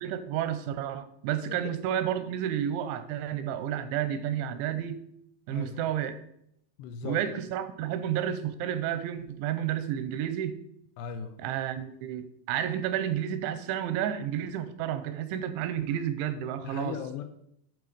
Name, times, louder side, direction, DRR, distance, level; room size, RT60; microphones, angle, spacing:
voice 1, 0.0-5.0 5.5-6.2 7.0-10.6 11.4-17.0, right 10 dB, 90° right, 3.0 m, -31 dB
voice 2, 1.4-1.7 5.5-5.8 6.8-7.2 11.0-11.5 16.6-17.2, left 8 dB, 80° left, 2.6 m, -38 dB
11.0 x 3.9 x 5.1 m
omnidirectional pair, 5.1 m